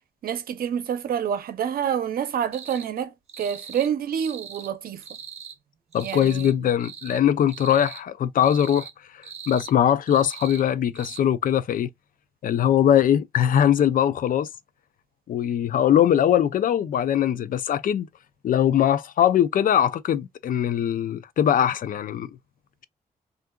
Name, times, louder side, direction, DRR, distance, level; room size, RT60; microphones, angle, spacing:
voice 1, 0.2-5.0 6.0-6.7, right 8 dB, 75° right, 0.7 m, -28 dB
sound 1, 2.5-2.9 3.3-3.9 4.2-4.7 5.0-5.6 5.9-6.5 6.8-7.2 7.5-8.0 8.4-8.9 9.2-9.7 10.1-10.6 10.9-11.2, right 7 dB, 45° right, 0.8 m, -41 dB
voice 2, 5.9-8.9 9.5-11.9 12.4-14.5 15.3-18.1 18.4-22.3, left 10 dB, 65° left, 0.4 m, -21 dB
3.6 x 2.5 x 2.2 m
cardioid pair, 105°, 15 cm